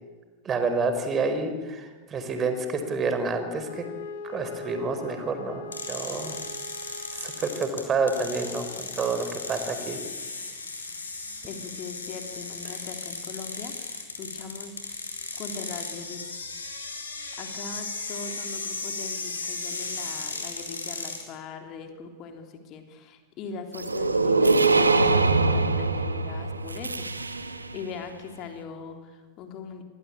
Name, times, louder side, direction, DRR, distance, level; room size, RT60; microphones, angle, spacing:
voice 1, 0.4-3.8 4.2-6.4 7.1-10.0, right 4 dB, 25° right, 8 dB, 4.4 m, -28 dB
Wind instrument woodwind instrument, 3.5-8.1, left 1 dB, 60° left, 2.4 m, -41 dB
sound 1, 5.7-21.2, left 3 dB, 75° left, 5.5 m, -36 dB
voice 2, 11.5-15.0 15.4-16.4 17.4-27.1 27.7-29.8, left 5 dB, 35° left, 5 dB, 3.4 m, -40 dB
sound 2, 23.7-27.8, right 3 dB, 80° right, 1.8 m, -23 dB
28.0 x 21.5 x 8.7 m, 1.4 s
figure-of-eight pair, 90°, 0 cm